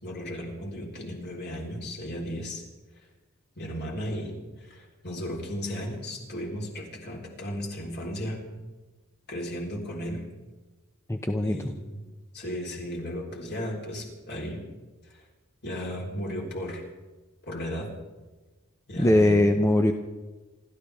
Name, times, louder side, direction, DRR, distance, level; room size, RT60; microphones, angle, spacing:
voice 1, 0.0-2.6 3.6-8.5 9.3-10.2 11.4-12.0 12.3-14.6 15.1-15.2 15.6-16.8 17.4-17.9 18.9-19.4, equal, 55° left, -1 dB, 4.1 m, -35 dB
voice 2, 11.1-11.7 19.0-19.9, left 1 dB, 15° left, 5 dB, 0.7 m, -21 dB
27.5 x 13.0 x 3.6 m, 1.2 s
head